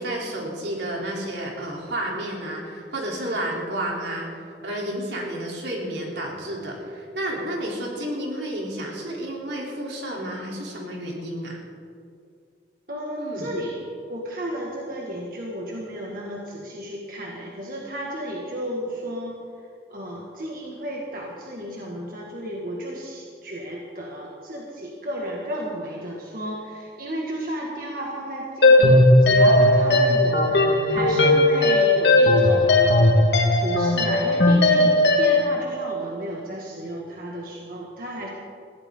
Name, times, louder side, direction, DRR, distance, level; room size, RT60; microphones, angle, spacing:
voice 1, 0.0-11.6 13.2-13.5, right 1 dB, 80° right, -2 dB, 3.8 m, -31 dB
voice 2, 12.9-19.4 19.9-33.3 33.5-38.3, equal, 50° right, -3 dB, 2.0 m, -33 dB
sound 1, 28.6-35.5, left 1 dB, 70° left, 2.0 m, -17 dB
21.5 x 15.5 x 3.9 m, 2.3 s
head